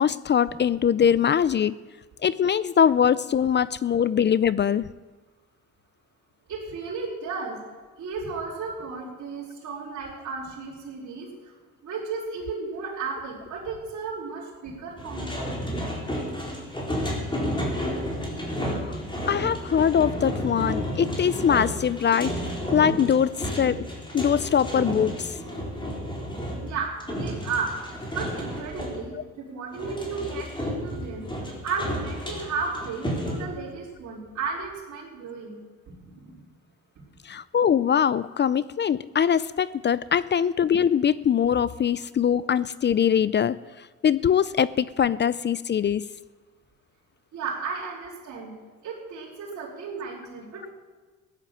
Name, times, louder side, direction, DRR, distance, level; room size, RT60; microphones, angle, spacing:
voice 1, 0.0-1.8 2.2-4.8 18.7-19.0 19.3-22.3 22.7-23.9 24.1-25.3 29.1-29.2 37.2-46.1, left 8 dB, 35° left, 18 dB, 0.4 m, -22 dB
voice 2, 6.5-7.6 8.0-11.3 11.8-15.7 26.6-27.8 28.1-31.3 31.6-35.6 35.9-36.4 47.3-48.5 48.8-50.7, right 4 dB, 70° right, -8 dB, 4.6 m, -34 dB
sound 1, 15.0-29.0 29.7-33.4, equal, 15° left, 4.2 m, -31 dB
15.5 x 10.5 x 7.5 m, 1.3 s
cardioid pair, 90°, 30 cm